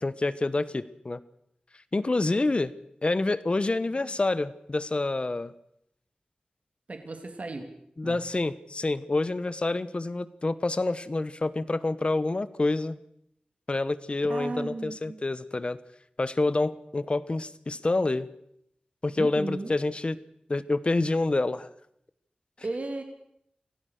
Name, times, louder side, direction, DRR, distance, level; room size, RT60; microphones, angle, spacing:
voice 1, 0.0-1.2 1.9-2.7 3.0-5.5 8.0-13.0 13.7-15.8 16.2-18.3 19.0-20.2 20.5-21.7, left 2 dB, 40° left, 15 dB, 1.1 m, -27 dB
voice 2, 6.9-7.7 8.0-8.2 14.2-15.2 19.1-19.8 22.6-23.0, right 2 dB, 55° right, 5 dB, 3.0 m, -35 dB
25.5 x 17.0 x 6.6 m, 0.74 s
wide cardioid pair, 90°, 3 cm